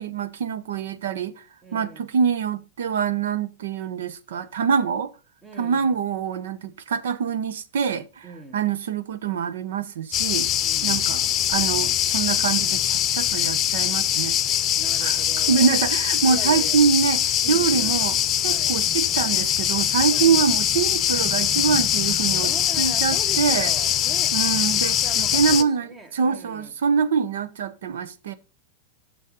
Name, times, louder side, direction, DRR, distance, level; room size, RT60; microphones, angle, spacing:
voice 1, 0.0-1.4 1.7-5.1 5.6-8.3 8.5-10.5 10.8-14.4 15.0-15.2 15.5-18.2 18.4-22.5 22.8-23.7 24.3-25.9 26.1-28.3, right 6 dB, 80° right, 0.9 m, -24 dB
voice 2, 1.6-2.1 5.4-6.0 8.2-8.6 10.6-11.0 14.8-15.9 16.3-16.8 17.4-18.0 18.4-18.8 20.1-20.3 22.3-24.3 24.7-26.7, right 2 dB, 20° right, 1.8 m, -41 dB
sound 1, 10.1-25.6, left 11 dB, 35° left, 0.7 m, -22 dB
6.6 x 6.3 x 5.3 m
hypercardioid pair, 120°, 0 cm